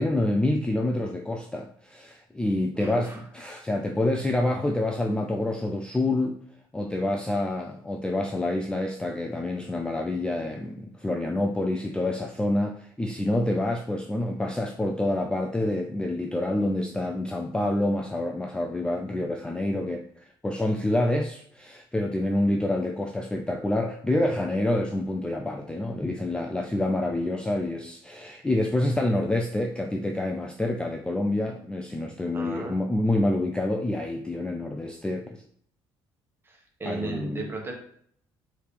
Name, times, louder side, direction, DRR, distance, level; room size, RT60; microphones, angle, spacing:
voice 1, 0.0-6.4 6.7-35.4 36.9-37.6, left 1 dB, 10° left, 3 dB, 0.4 m, -27 dB
voice 2, 2.7-3.2 3.5-3.6 32.3-32.7 36.4-37.7, right 2 dB, 20° right, 0 dB, 1.4 m, -35 dB
4.7 x 3.3 x 3.3 m, 0.62 s
cardioid pair, 90°, 10 cm